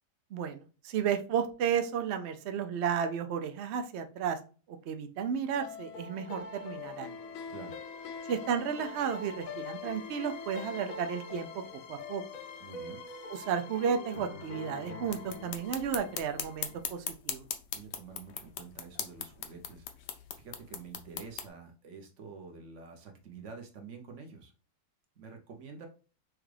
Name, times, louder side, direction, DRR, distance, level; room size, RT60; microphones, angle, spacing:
voice 1, 0.3-4.4 4.7-7.2 8.3-11.5 11.9-12.2 13.3-17.5, right 7 dB, 85° right, 6 dB, 0.5 m, -33 dB
sound 1, 5.6-16.8, left 4 dB, 65° left, 1.0 m, -43 dB
voice 2, 12.6-13.0 17.7-24.5 25.2-25.9, right 5 dB, 55° right, 3 dB, 1.1 m, -48 dB
sound 2, 15.1-21.5, left 8 dB, 85° left, 1.3 m, -40 dB
6.1 x 2.4 x 3.2 m, 0.36 s
omnidirectional pair, 1.8 m